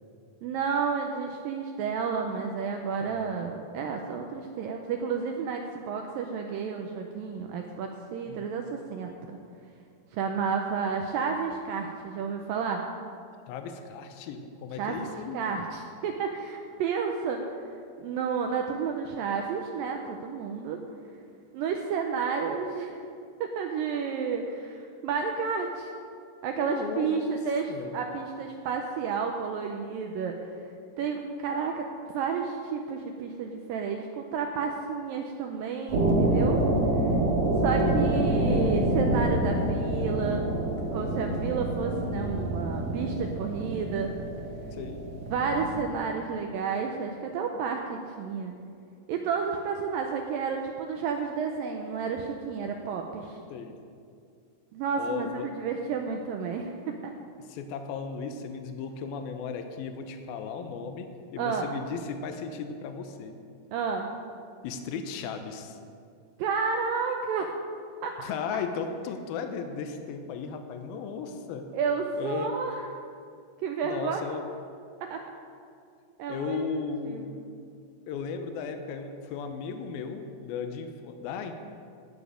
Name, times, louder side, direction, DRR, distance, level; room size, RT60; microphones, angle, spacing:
voice 1, 0.4-9.4 10.1-12.8 14.8-15.0 15.3-17.4 18.0-20.8 21.5-22.9 23.4-25.9 26.4-27.6 27.9-30.4 31.0-31.9 32.1-36.7 37.6-40.4 40.9-44.1 45.3-48.6 49.1-53.4 54.7-57.1 61.4-61.7 63.7-64.1 66.4-67.5 68.0-68.2 71.7-72.8 73.6-74.2 75.1-75.2 76.2-76.6 77.0-77.2, right 6 dB, 80° right, 3 dB, 2.2 m, -31 dB
voice 2, 3.0-3.4 8.3-8.5 13.5-15.5 26.5-27.4 27.7-28.0 38.7-38.8 39.8-39.9 44.7-45.0 53.5-53.8 55.0-55.5 57.4-63.4 64.6-65.8 68.2-71.7 72.1-72.5 73.8-74.5 76.3-77.3 78.1-81.5, left 5 dB, 80° left, 6 dB, 2.5 m, -36 dB
sound 1, 35.9-45.8, right 1 dB, 55° right, 2.4 m, -27 dB
18.5 x 7.0 x 5.1 m, 2.3 s
omnidirectional pair, 4.5 m